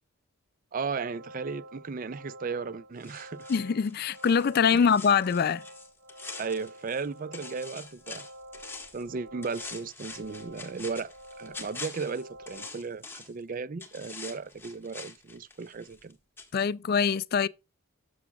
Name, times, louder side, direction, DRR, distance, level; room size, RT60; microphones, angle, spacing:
voice 1, 0.7-3.5 4.7-4.9 6.4-8.3 8.9-16.2, right 5 dB, 40° right, 0.4 m, -35 dB
sound 1, 1.0-12.7, right 1 dB, 80° right, 2.3 m, -49 dB
sound 2, 3.0-7.1 7.3-9.1 9.4-13.4 13.8-16.1 16.4-16.5, left 4 dB, 10° left, 1.6 m, -45 dB
voice 2, 3.5-5.6 16.5-17.5, left 6 dB, 45° left, 0.3 m, -24 dB
13.0 x 7.0 x 2.3 m
head